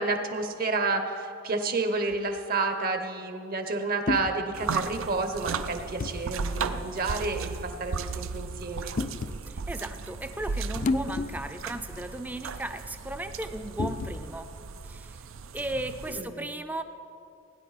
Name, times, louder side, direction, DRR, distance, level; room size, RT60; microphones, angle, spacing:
voice 1, 0.0-9.0 16.1-16.5, right 3 dB, 50° right, 7 dB, 0.9 m, -30 dB
sound 1, 2.1-2.4 4.1-4.4 6.0-6.2 7.3-7.5 9.0-9.4 10.8-11.6 12.0-12.1 13.8-14.3, left 3 dB, 40° left, 0.4 m, -30 dB
sound 2, 4.5-16.2, right 5 dB, 85° right, 0.5 m, -36 dB
voice 2, 9.5-14.5 14.8-15.2 15.5-16.8, right 1 dB, 10° right, 9 dB, 0.5 m, -36 dB
17.5 x 9.7 x 4.1 m, 2.4 s
head